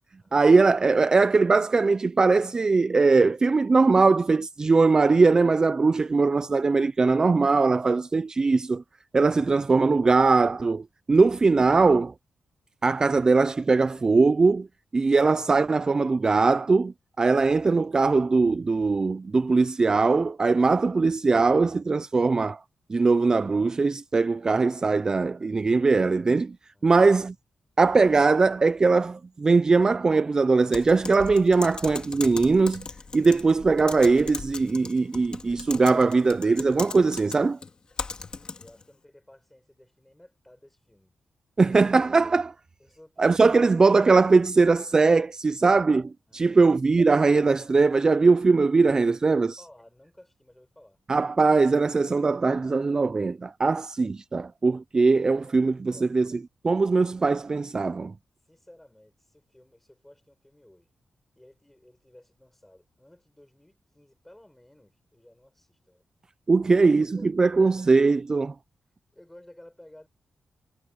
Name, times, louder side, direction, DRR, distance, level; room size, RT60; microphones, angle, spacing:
voice 1, 0.3-8.8 9.1-12.1 12.8-14.7 14.9-22.6 22.9-26.6 26.8-27.3 27.8-32.8 33.1-37.6 41.6-42.5 43.2-49.5 51.1-56.3 56.6-58.1 66.5-68.5, right 4 dB, 30° right, 0.3 m, -21 dB
voice 2, 26.7-27.1 38.3-41.1 41.6-42.0 42.8-43.4 46.3-46.7 49.3-51.0 55.9-56.1 58.4-60.9 61.4-66.0 66.6-67.3 69.1-70.1, left 1 dB, 10° left, 7.3 m, -54 dB
Typing, 30.7-38.8, left 4 dB, 40° left, 2.1 m, -38 dB
wide cardioid pair, 125°, 2 cm